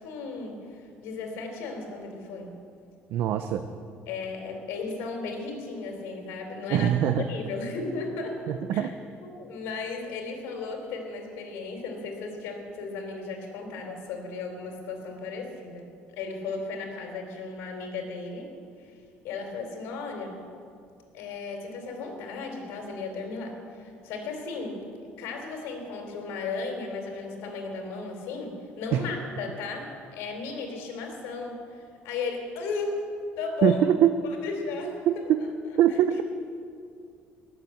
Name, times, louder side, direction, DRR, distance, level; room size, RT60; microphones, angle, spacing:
voice 1, 0.0-2.5 4.1-8.4 8.7-8.9 9.4-18.5 19.2-20.4 21.1-24.8 25.2-33.1 33.4-33.8 34.4-35.2, left 4 dB, 85° left, 3 dB, 3.5 m, -35 dB
voice 2, 3.1-3.6 6.7-7.2 8.5-9.0 28.9-29.0 33.6-34.1 35.1-35.4 35.8-36.2, right 10 dB, 65° right, 8 dB, 0.7 m, -23 dB
20.0 x 7.5 x 7.9 m, 2.4 s
cardioid pair, 135°, 4 cm